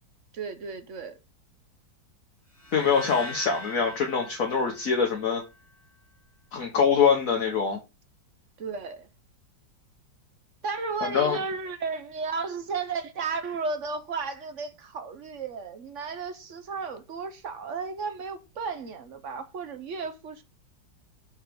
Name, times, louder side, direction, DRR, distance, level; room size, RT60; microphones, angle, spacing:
voice 1, 0.3-1.2 8.6-9.1 10.6-20.4, right 4 dB, 55° right, 0.9 m, -34 dB
sound 1, 2.5-5.7, left 2 dB, 10° left, 2.1 m, -42 dB
voice 2, 2.7-5.4 6.5-7.8 11.0-11.4, left 6 dB, 50° left, 1.6 m, -24 dB
6.6 x 4.6 x 5.1 m
omnidirectional pair, 2.0 m